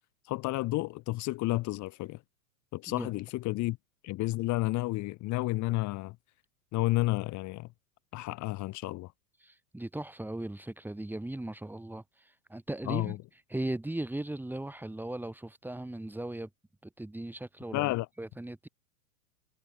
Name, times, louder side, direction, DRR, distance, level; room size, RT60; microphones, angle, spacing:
voice 1, 0.3-2.2 2.7-3.8 4.0-6.2 6.7-7.7 8.1-9.1 12.9-13.2 17.7-18.1, left 19 dB, 35° left, 3.7 m, -31 dB
voice 2, 9.4-13.2 13.5-16.5 16.8-17.9 18.2-18.7, right 1 dB, 5° right, 4.8 m, -38 dB
figure-of-eight pair, 100°, 47 cm